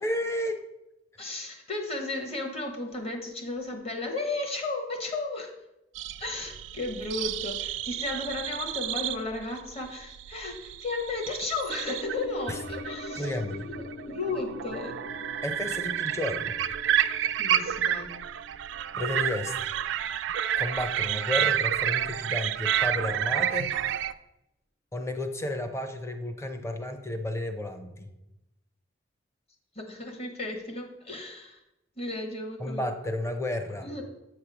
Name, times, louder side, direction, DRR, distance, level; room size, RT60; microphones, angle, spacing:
voice 1, 0.0-0.6 12.5-12.6 13.2-13.7 15.4-16.5 19.0-19.7 20.6-23.7 24.9-28.1 32.6-33.9, left 1 dB, 15° left, 6 dB, 0.6 m, -32 dB
voice 2, 1.2-5.5 6.2-13.3 13.6-15.0 17.4-18.2 29.7-31.6 32.0-32.9 33.8-34.0, left 2 dB, 35° left, 3 dB, 1.1 m, -34 dB
sound 1, 6.0-24.1, right 10 dB, 80° right, 0.3 m, -30 dB
sound 2, 11.7-20.1 20.4-20.5, left 2 dB, 70° left, 0.8 m, -43 dB
8.3 x 3.2 x 6.0 m, 0.91 s
head